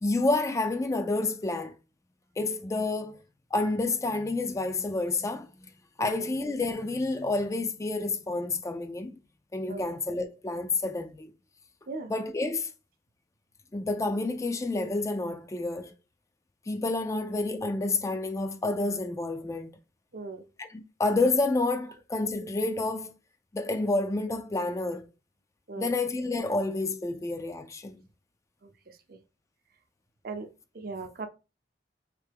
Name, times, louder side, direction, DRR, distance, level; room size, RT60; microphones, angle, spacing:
voice 1, 0.0-1.8 2.4-3.2 3.5-5.5 6.0-9.2 9.5-11.3 12.1-12.7 13.7-15.9 16.7-19.7 20.6-23.1 23.5-25.1 25.8-28.0, left 2 dB, 15° left, 0.3 m, -29 dB
voice 2, 20.1-20.5 25.7-25.9 28.6-28.7 29.1-29.2 30.2-30.5 30.7-31.3, right 3 dB, 55° right, 0.6 m, -38 dB
3.6 x 3.3 x 3.4 m
head